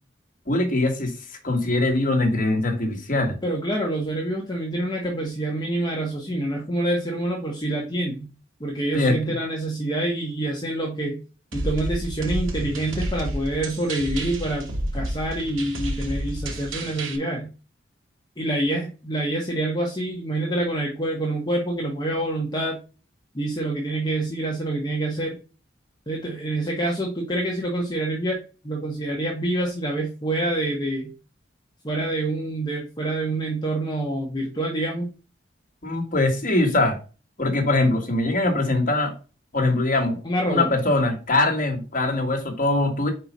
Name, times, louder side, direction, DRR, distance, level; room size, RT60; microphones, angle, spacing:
voice 1, 0.5-1.2 1.4-3.4 8.9-9.4 35.8-37.0 37.4-39.1 39.5-40.2 40.5-43.1, left 2 dB, 45° left, 1.7 m, -22 dB
voice 2, 3.4-8.3 8.6-11.2 11.5-14.7 14.9-17.5 18.4-22.8 23.3-25.4 26.1-28.4 28.6-31.1 31.8-35.1 40.2-40.7, right 1 dB, 20° left, 1.2 m, -26 dB
sound 1, 11.5-17.2, right 1 dB, 90° right, 1.6 m, -30 dB
4.9 x 4.5 x 5.3 m
head